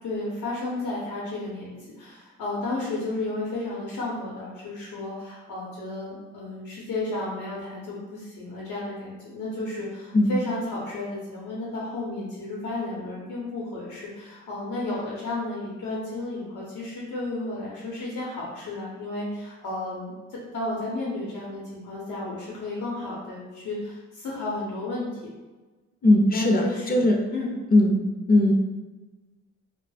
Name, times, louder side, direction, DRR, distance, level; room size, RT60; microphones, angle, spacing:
voice 1, 0.0-25.2 26.3-27.0 27.3-27.5, left 2 dB, 80° left, -6 dB, 0.7 m, -33 dB
voice 2, 26.0-27.2 27.7-28.0 28.3-28.5, left 1 dB, 30° left, 2 dB, 0.5 m, -19 dB
2.2 x 2.0 x 3.2 m, 1.2 s
cardioid pair, 90°, 30 cm